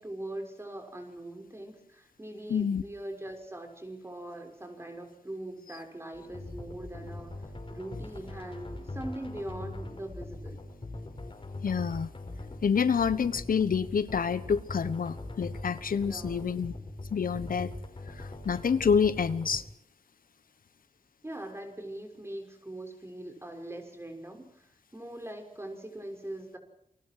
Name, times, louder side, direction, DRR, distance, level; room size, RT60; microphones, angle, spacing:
voice 1, 0.0-10.6 16.0-16.5 21.2-26.6, right 1 dB, 20° right, 4 dB, 6.1 m, -42 dB
voice 2, 2.5-2.8 11.6-12.1 12.6-16.7 17.1-17.7 18.2-19.6, left 6 dB, 85° left, 14 dB, 1.1 m, -27 dB
sound 1, 6.1-19.6, left 2 dB, 40° left, 6.1 m, -41 dB
28.5 x 24.0 x 4.8 m, 0.73 s
wide cardioid pair, 95°, 14 cm